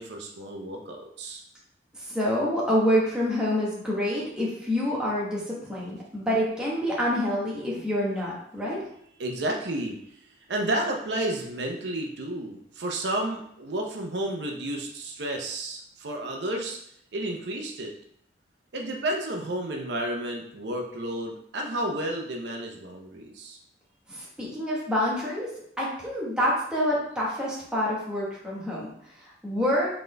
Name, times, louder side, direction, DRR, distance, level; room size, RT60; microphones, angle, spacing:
voice 1, 0.0-1.4 9.2-10.0 10.5-16.8 17.1-17.9 18.7-23.6, right 1 dB, 70° right, 2 dB, 0.7 m, -31 dB
voice 2, 1.9-8.8 24.1-25.5 25.8-30.0, equal, 5° right, -6 dB, 1.2 m, -27 dB
4.1 x 3.8 x 3.3 m, 0.70 s
head